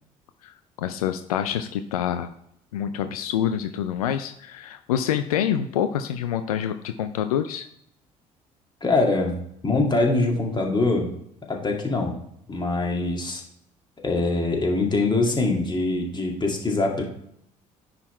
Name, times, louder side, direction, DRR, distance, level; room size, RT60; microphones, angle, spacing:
voice 1, 0.4-2.3 2.7-7.7, left 9 dB, 80° left, 9 dB, 0.4 m, -27 dB
voice 2, 8.8-9.4 9.6-11.1 11.5-12.1 12.5-13.4 14.0-17.0, left 2 dB, 25° left, 0 dB, 2.3 m, -23 dB
9.8 x 3.9 x 4.4 m, 0.72 s
hypercardioid pair, 55°, 19 cm